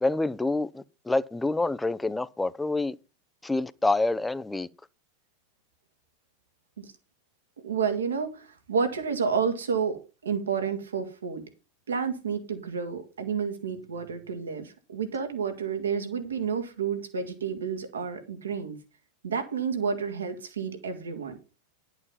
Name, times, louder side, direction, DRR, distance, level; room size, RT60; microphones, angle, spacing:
voice 1, 0.0-3.0 3.4-4.7, left 2 dB, 10° left, 0.7 m, -27 dB
voice 2, 7.6-11.5 11.9-18.8 19.2-21.4, right 6 dB, 80° right, 2.2 m, -30 dB
11.0 x 7.1 x 5.6 m
hypercardioid pair, 90°, 0 cm